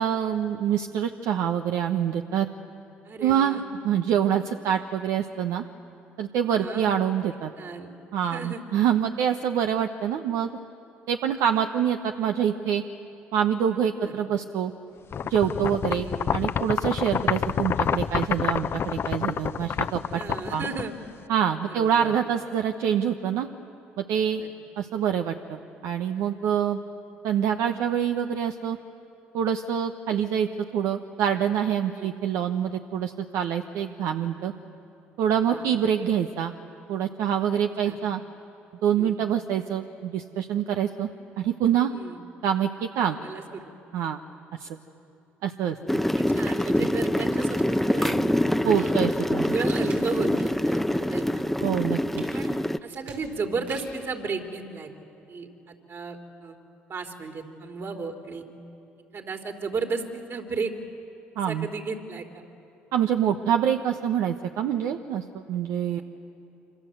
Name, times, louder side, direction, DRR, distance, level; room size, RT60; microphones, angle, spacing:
voice 1, 0.0-2.5 3.2-5.6 6.2-7.5 8.1-10.5 11.1-12.8 13.3-14.7 15.3-20.2 20.5-20.6 21.3-23.5 24.0-24.4 24.8-26.8 27.2-28.8 29.3-34.5 35.2-36.5 36.9-38.2 38.8-41.1 41.4-41.9 42.4-43.2 43.9-44.2 44.6-44.7 45.4-45.8 48.6-49.5 51.6-52.2 61.4-61.7 62.9-66.0, right 9 dB, 70° right, 5 dB, 1.1 m, -26 dB
voice 2, 3.1-3.6 6.6-7.0 7.6-7.9 8.2-8.6 14.0-14.1 16.0-16.3 17.1-17.5 20.1-20.9 21.8-22.1 24.4-24.5 31.9-32.1 35.5-35.6 37.8-38.0 39.0-39.1 41.9-42.2 43.1-43.7 46.2-48.2 48.7-49.0 49.4-51.4 52.3-52.5 52.8-54.9 55.3-55.5 55.9-56.6 56.9-58.4 59.1-60.7 61.5-62.4, right 4 dB, 50° right, 4 dB, 3.7 m, -34 dB
sound 1, 15.1-21.2, left 7 dB, 50° left, 0.9 m, -28 dB
sound 2, 45.9-52.8, left 1 dB, 5° left, 0.9 m, -25 dB
sound 3, 46.6-48.2 48.7-50.7 51.1-54.1 54.7-54.8, right 4 dB, 85° right, 5.9 m, -49 dB
27.0 x 26.0 x 8.0 m, 2.9 s
hypercardioid pair, 60°, 6 cm